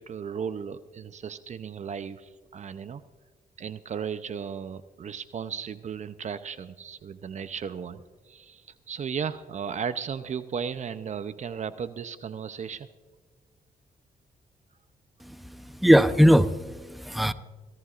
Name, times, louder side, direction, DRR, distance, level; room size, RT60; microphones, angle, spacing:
voice 1, 0.0-3.0 3.6-12.9, right 7 dB, 55° right, 13 dB, 0.6 m, -35 dB
voice 2, 15.2-17.3, equal, ahead, 11 dB, 0.7 m, -21 dB
26.0 x 14.0 x 2.5 m, 1.4 s
cardioid pair, 70°, 15 cm